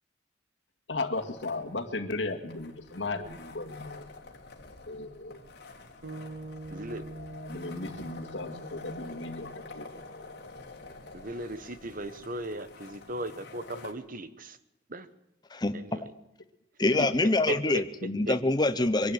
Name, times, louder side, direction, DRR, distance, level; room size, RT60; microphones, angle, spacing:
voice 1, 0.9-4.1 4.9-5.4 7.3-9.9 16.9-17.1 18.0-18.2, left 2 dB, 80° left, 4 dB, 2.2 m, -35 dB
sound 1, 1.2-13.9, left 3 dB, 60° left, 3.0 m, -48 dB
sound 2, 6.0-10.4, right 2 dB, 65° right, 2.0 m, -45 dB
voice 2, 6.7-7.0 11.1-14.6 14.9-15.1 15.7-16.1 17.5-17.8 18.3-18.4, right 2 dB, 50° right, 13 dB, 1.2 m, -37 dB
voice 3, 15.5-16.1 16.8-17.8 18.1-19.1, left 2 dB, 25° left, 9 dB, 0.8 m, -25 dB
23.5 x 11.5 x 9.6 m, 0.90 s
head